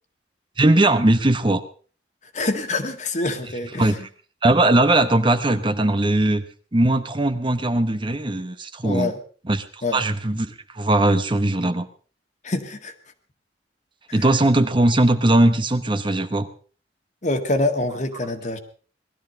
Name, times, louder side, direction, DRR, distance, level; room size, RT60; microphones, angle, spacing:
voice 1, 0.6-1.6 3.8-3.9 4.4-6.4 6.7-9.1 9.5-9.6 9.9-11.9 14.1-16.5, right 1 dB, 30° right, 10 dB, 1.0 m, -19 dB
voice 2, 2.3-3.9 8.8-9.2 9.8-10.0 12.4-12.9 14.1-14.3 17.2-18.6, left 2 dB, 45° left, 7 dB, 1.8 m, -25 dB
19.0 x 13.0 x 5.3 m, 0.41 s
head